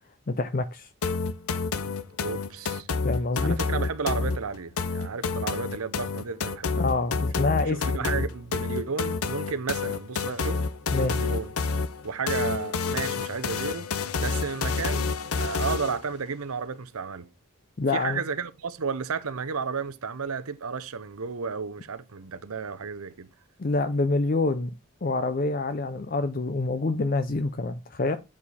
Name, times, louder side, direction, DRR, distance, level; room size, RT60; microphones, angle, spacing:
voice 1, 0.3-0.9 3.0-3.6 6.8-8.2 10.9-11.2 17.8-18.2 23.6-24.7 25.0-28.2, left 3 dB, 40° left, 0.5 m, -27 dB
sound 1, 1.0-16.0, left 4 dB, 80° left, 0.7 m, -29 dB
voice 2, 2.2-2.9 3.4-6.8 7.7-10.7 11.0-11.5 12.0-13.9 14.2-17.3 17.9-23.3, right 5 dB, 80° right, 0.7 m, -33 dB
8.5 x 4.9 x 4.1 m
head